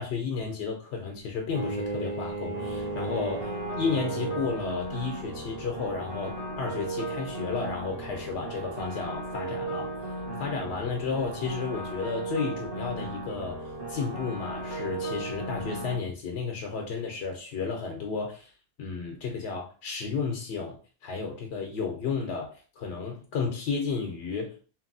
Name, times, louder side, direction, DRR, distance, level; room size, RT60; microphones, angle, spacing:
voice 1, 0.0-9.9 10.4-13.6 13.9-18.5 18.8-20.8 21.0-24.5, left 5 dB, 90° left, 1 dB, 0.9 m, -32 dB
Bowed string instrument, 1.5-4.7, right 3 dB, 40° right, 0.7 m, -34 dB
sound 1, 2.5-15.9, right 2 dB, 60° right, 1.1 m, -36 dB
2.9 x 2.6 x 2.6 m, 0.38 s
omnidirectional pair, 1.1 m